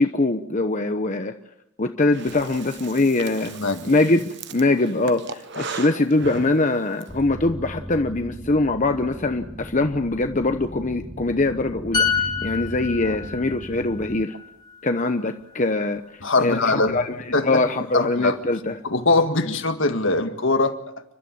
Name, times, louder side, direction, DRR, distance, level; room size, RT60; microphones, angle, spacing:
voice 1, 0.0-1.3 1.8-3.5 3.9-4.2 4.5-14.4 14.8-17.1 17.4-18.8 19.5-19.6, left 2 dB, 35° left, 7 dB, 0.9 m, -22 dB
Breathing, 2.1-7.1, right 5 dB, 55° right, 1.2 m, -37 dB
voice 2, 3.4-3.9 13.0-13.2 16.2-17.0 17.3-17.6 17.9-18.4 18.8-20.8, left 3 dB, 65° left, 8 dB, 1.9 m, -22 dB
sound 1, 7.1-14.2, equal, 5° right, 0.8 m, -38 dB
sound 2, 11.9-15.5 15.9-16.1, left 6 dB, 20° left, 2.8 m, -28 dB
29.5 x 12.5 x 8.7 m, 0.82 s
head